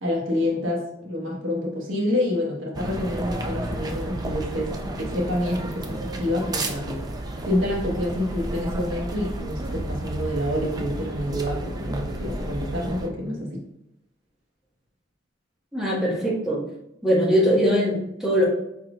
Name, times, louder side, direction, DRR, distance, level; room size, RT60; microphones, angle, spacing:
voice 1, 0.0-7.0 7.4-13.6, left 1 dB, 85° right, -2 dB, 1.3 m, -27 dB
sound 1, 2.7-13.1, right 1 dB, 20° right, 0.4 m, -32 dB
voice 2, 15.7-16.6 17.0-18.4, equal, 5° right, -8 dB, 1.5 m, -21 dB
4.9 x 4.3 x 2.4 m, 0.81 s
head